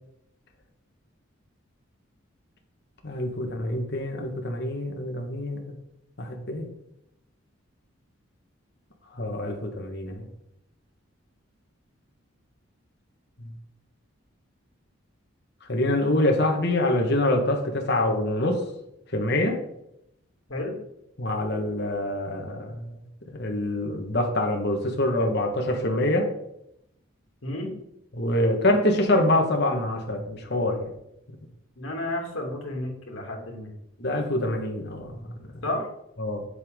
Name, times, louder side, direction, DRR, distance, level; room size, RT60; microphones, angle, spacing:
voice 1, 3.0-5.7 6.2-6.7 9.1-10.3 13.4-13.5 15.7-18.6 19.1-19.6 21.2-23.0 23.3-26.3 28.1-30.9 34.0-35.3 35.5-35.6 36.2-36.5, left 1 dB, 55° left, 2 dB, 1.7 m, -25 dB
voice 2, 31.8-33.7 35.6-35.9, left 1 dB, 75° left, 0 dB, 2.7 m, -31 dB
8.4 x 8.0 x 3.9 m, 0.80 s
head